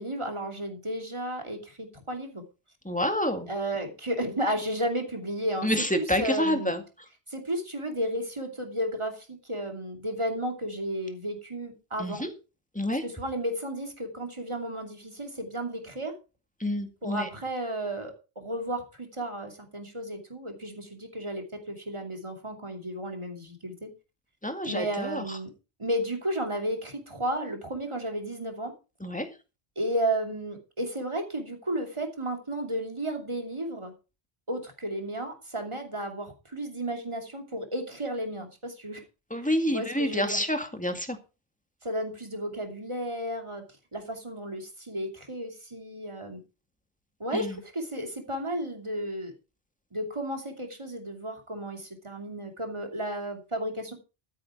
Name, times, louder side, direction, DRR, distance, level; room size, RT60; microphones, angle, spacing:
voice 1, 0.0-2.4 3.5-6.7 7.3-12.3 13.0-16.2 17.0-23.9 24.6-25.5 25.8-28.7 29.8-33.9 34.5-39.0 39.4-40.4 41.8-43.6 43.9-46.4 47.2-49.3 49.9-53.9, right 1 dB, 30° right, 4 dB, 2.7 m, -33 dB
voice 2, 2.9-3.5 5.6-6.8 12.0-12.3 12.8-13.0 16.6-17.3 24.4-25.2 29.0-29.3 39.3-41.2 47.4-47.6, equal, 5° left, 7 dB, 1.9 m, -28 dB
13.0 x 9.8 x 4.7 m, 0.31 s
omnidirectional pair, 1.0 m